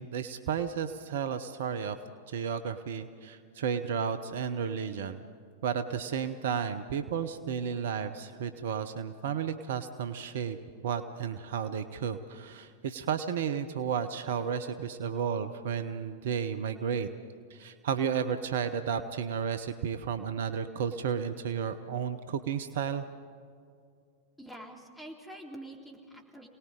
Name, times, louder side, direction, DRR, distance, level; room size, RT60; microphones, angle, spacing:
voice 1, 0.0-2.0 2.3-5.2 5.6-10.6 10.8-17.1 17.5-23.0, right 7 dB, 60° right, 10 dB, 0.9 m, -33 dB
voice 2, 24.4-26.5, right 1 dB, 5° left, -1 dB, 3.5 m, -46 dB
27.0 x 19.0 x 5.2 m, 2.3 s
figure-of-eight pair, 90°, 0 cm